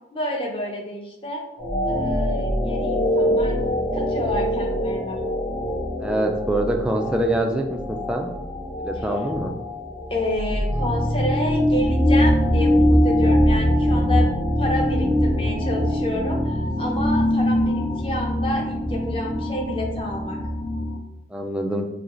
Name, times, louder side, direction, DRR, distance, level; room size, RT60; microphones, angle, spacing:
voice 1, 0.1-1.4 1.9-3.6 3.9-5.2 10.1-14.3 14.6-20.4, left 1 dB, 30° left, 0 dB, 0.7 m, -29 dB
sound 1, 1.6-21.0, equal, 65° left, 1.5 m, -23 dB
voice 2, 6.0-8.3 8.8-9.5 21.3-21.9, right 1 dB, 5° right, 2 dB, 0.3 m, -24 dB
4.1 x 2.7 x 3.0 m, 0.95 s
head